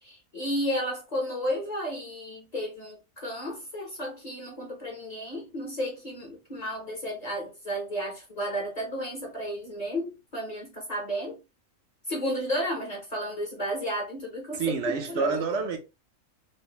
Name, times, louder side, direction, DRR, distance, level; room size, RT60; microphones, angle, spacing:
voice 1, 0.0-11.4 12.1-15.4, equal, 35° left, 0.9 m, -33 dB
voice 2, 14.5-15.8, right 5 dB, 65° right, 1.0 m, -28 dB
3.3 x 2.7 x 2.8 m
omnidirectional pair, 1.4 m